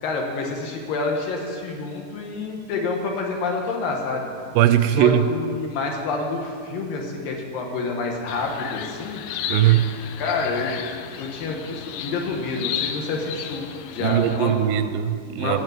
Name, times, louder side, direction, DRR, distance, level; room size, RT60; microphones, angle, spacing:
voice 1, 0.0-4.3 5.0-9.2 10.2-10.7 11.2-14.5 15.4-15.6, left 3 dB, 65° left, 1 dB, 2.8 m, -28 dB
voice 2, 4.6-5.3 9.5-9.9 14.0-15.6, right 12 dB, 90° right, 12 dB, 2.6 m, -19 dB
sound 1, 8.3-14.4, left 9 dB, 85° left, 2.6 m, -33 dB
14.5 x 5.2 x 9.2 m, 2.2 s
omnidirectional pair, 4.6 m